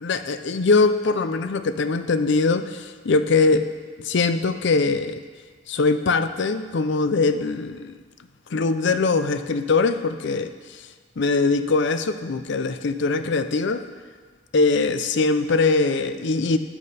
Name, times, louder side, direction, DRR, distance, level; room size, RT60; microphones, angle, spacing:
voice 1, 0.0-3.7 4.0-5.2 5.7-7.9 8.5-10.5 11.2-13.9 14.5-16.6, left 3 dB, 65° left, 11 dB, 0.5 m, -22 dB
13.5 x 8.5 x 4.2 m, 1.5 s
head